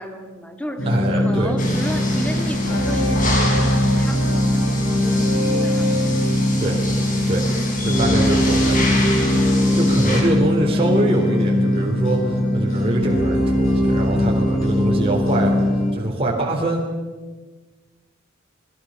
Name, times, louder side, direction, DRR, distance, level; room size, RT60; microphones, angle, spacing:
voice 1, 0.0-6.1 10.6-11.1, equal, 5° left, 5 dB, 1.9 m, -34 dB
sound 1, 0.8-15.9, left 1 dB, 75° left, 7.0 m, -20 dB
voice 2, 0.9-1.5 6.6-6.8 7.3-7.4 7.8-9.0 9.7-16.8, right 1 dB, 30° right, -2 dB, 3.8 m, -23 dB
sound 2, 1.6-10.2, left 1 dB, 40° left, 5.6 m, -27 dB
28.0 x 20.0 x 5.8 m, 1.3 s
head